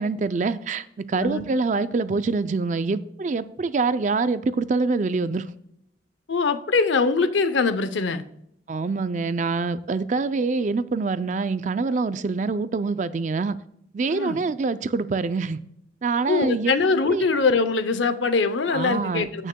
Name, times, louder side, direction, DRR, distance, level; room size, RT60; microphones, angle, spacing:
voice 1, 0.0-5.5 8.7-13.6 13.9-15.6 16.0-16.7 17.1-17.3 18.7-19.5, right 4 dB, 40° right, 0.4 m, -25 dB
voice 2, 6.3-8.2 14.1-14.4 16.3-19.5, left 4 dB, 80° left, 0.6 m, -22 dB
15.0 x 6.3 x 2.2 m
head